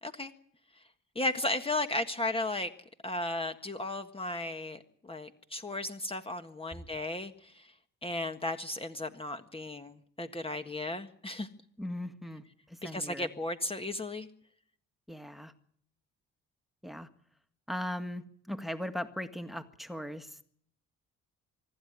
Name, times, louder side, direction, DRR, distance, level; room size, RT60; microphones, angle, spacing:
voice 1, 0.0-0.3 1.1-2.7 3.0-7.7 8.0-11.5 12.8-14.3, left 2 dB, 20° left, 7 dB, 1.6 m, -35 dB
voice 2, 11.8-13.3 15.1-15.5 16.8-17.1 17.7-20.5, left 1 dB, ahead, 9 dB, 1.9 m, -39 dB
25.0 x 13.0 x 9.4 m, 0.64 s
cardioid pair, 90°, 30 cm